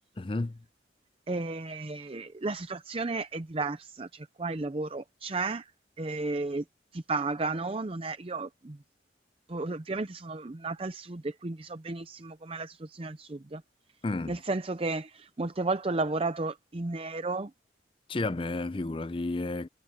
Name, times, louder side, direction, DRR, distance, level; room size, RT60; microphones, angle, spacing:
voice 1, 0.2-0.6 14.0-14.4 18.1-19.7, left 2 dB, 30° left, 0.5 m, -31 dB
voice 2, 1.3-5.7 6.0-6.6 6.9-8.8 9.5-13.6 14.3-17.5, right 3 dB, 30° right, 0.6 m, -33 dB
head